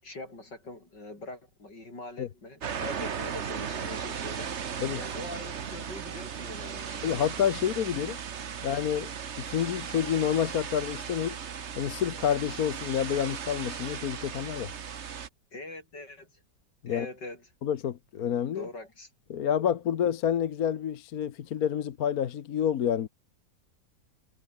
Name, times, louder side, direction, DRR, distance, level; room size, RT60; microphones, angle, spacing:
voice 1, 0.0-4.6 4.9-7.1 8.6-8.7 15.5-16.3 16.9-17.5 18.5-19.1, left 2 dB, 75° left, 8.2 m, -43 dB
sound 1, 2.6-15.3, right 7 dB, 45° right, 1.3 m, -37 dB
voice 2, 7.0-8.2 8.6-9.1 9.4-11.3 11.8-14.7 16.8-17.1 17.6-18.7 19.3-23.1, left 9 dB, 60° left, 1.4 m, -28 dB
omnidirectional pair, 1.9 m